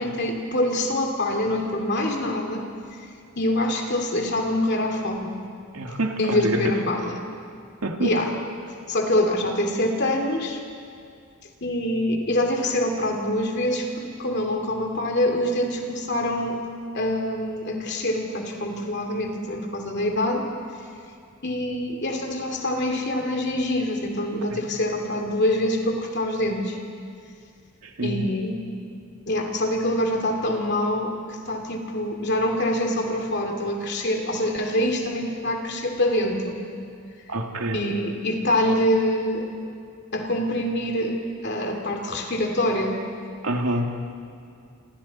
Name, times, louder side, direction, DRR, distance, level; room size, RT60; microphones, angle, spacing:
voice 1, 0.0-2.7 3.4-5.4 6.2-7.2 8.0-8.3 8.9-10.6 11.6-16.6 16.9-20.5 21.4-26.8 28.0-28.6 29.3-36.6 37.7-39.5 40.1-43.0, left 1 dB, 50° left, 3 dB, 2.6 m, -25 dB
voice 2, 5.7-6.7 7.8-8.1 24.5-24.6 27.8-28.3 37.3-37.8 43.4-43.9, right 1 dB, 80° right, 3 dB, 2.1 m, -26 dB
28.5 x 24.5 x 4.3 m, 2.3 s
head